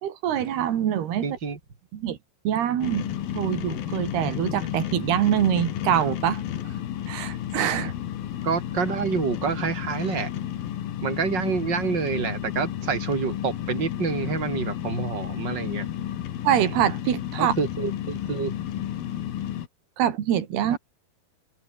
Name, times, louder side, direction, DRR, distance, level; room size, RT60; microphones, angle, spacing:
voice 1, 0.0-1.3 1.9-2.2 2.5-3.1 3.3-6.4 7.1-7.9 16.4-17.5 20.0-20.8, right 10 dB, 90° right, 4.3 m, -24 dB
voice 2, 1.2-1.6 8.4-10.3 11.0-15.9 17.4-18.5 20.7-20.8, right 5 dB, 30° right, 4.0 m, -27 dB
sound 1, 2.8-19.7, left 11 dB, 70° left, 3.5 m, -32 dB
omnidirectional pair, 4.4 m